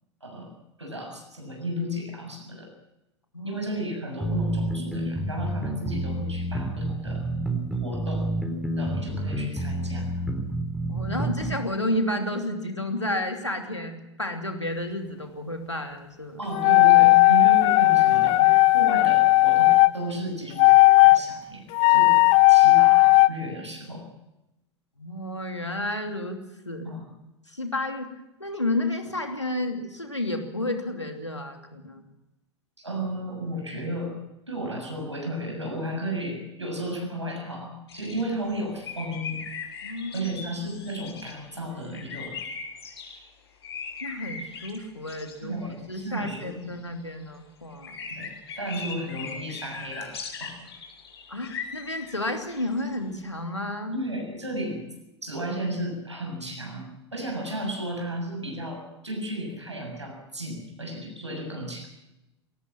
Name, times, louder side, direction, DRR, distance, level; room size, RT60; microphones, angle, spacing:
voice 1, 0.2-0.5 0.8-2.7 3.4-7.2 7.8-8.3 8.8-10.1 16.4-20.7 21.0-24.0 26.9-27.1 32.8-34.2 34.5-39.4 40.1-42.4 45.4-46.7 48.1-50.1 50.4-50.7 53.9-54.8 55.2-61.9, right 1 dB, 85° right, 2 dB, 7.1 m, -34 dB
sound 1, 4.2-11.6, right 1 dB, ahead, 3.8 m, -29 dB
voice 2, 10.9-16.4 25.0-26.4 26.6-26.9 27.5-28.1 28.4-32.0 39.8-40.3 44.0-45.6 45.9-48.0 51.3-54.0, left 1 dB, 90° left, 4 dB, 2.9 m, -31 dB
sound 2, 16.5-19.9 20.6-21.2 21.7-23.3, left 22 dB, 45° left, 0.9 m, -16 dB
sound 3, 37.9-43.2 43.6-45.6 45.9-47.1 47.7-52.9, left 5 dB, 65° left, 6.6 m, -39 dB
22.0 x 17.5 x 7.5 m, 0.94 s
figure-of-eight pair, 85°, 15 cm